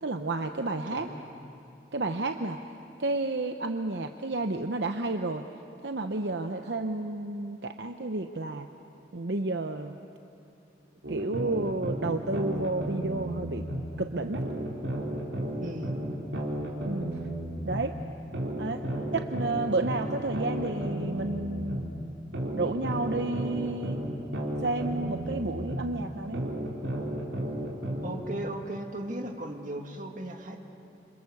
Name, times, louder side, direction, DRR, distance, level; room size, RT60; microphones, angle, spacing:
voice 1, 0.0-1.1 1.9-2.6 3.0-5.4 5.8-8.7 9.1-10.0 11.1-13.6 14.0-14.4 16.9-17.1 17.6-17.9 18.6-18.8 19.1-21.9 22.5-24.0 24.6-26.4, right 2 dB, 65° right, 6 dB, 0.8 m, -31 dB
voice 2, 0.9-1.2 15.6-15.9 28.0-30.6, right 1 dB, 45° right, 3 dB, 2.1 m, -36 dB
sound 1, 11.0-13.8 14.3-17.8 18.3-21.8 22.3-25.8 26.3-28.1, right 1 dB, 80° right, 4.4 m, -33 dB
28.0 x 27.0 x 7.2 m, 2.6 s
head